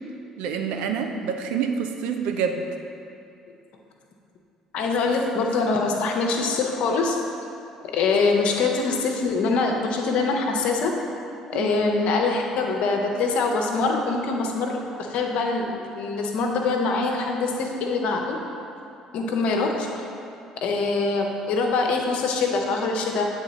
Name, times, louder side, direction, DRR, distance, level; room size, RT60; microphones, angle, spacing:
voice 1, 0.4-2.6 11.5-11.7, right 6 dB, 70° right, 4 dB, 0.5 m, -27 dB
voice 2, 4.7-7.2 7.9-11.0 11.5-18.4 19.1-19.9 20.6-23.3, left 3 dB, 65° left, 2 dB, 0.7 m, -24 dB
8.3 x 3.7 x 3.9 m, 2.6 s
hypercardioid pair, 55°, 2 cm